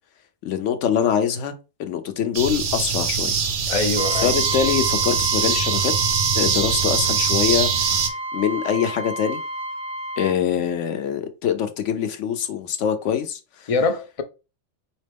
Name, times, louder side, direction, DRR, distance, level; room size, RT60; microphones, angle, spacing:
voice 1, 0.4-1.5 1.8-3.4 4.2-5.9 6.3-9.4 10.2-13.7, left 8 dB, 85° left, 1.0 m, -24 dB
sound 1, 2.3-8.1, right 6 dB, 80° right, 1.1 m, -22 dB
voice 2, 3.7-4.3 13.7-14.2, left 4 dB, 50° left, 0.4 m, -23 dB
Trumpet, 3.9-10.4, right 2 dB, 45° right, 0.9 m, -30 dB
4.1 x 3.0 x 3.4 m
omnidirectional pair, 1.2 m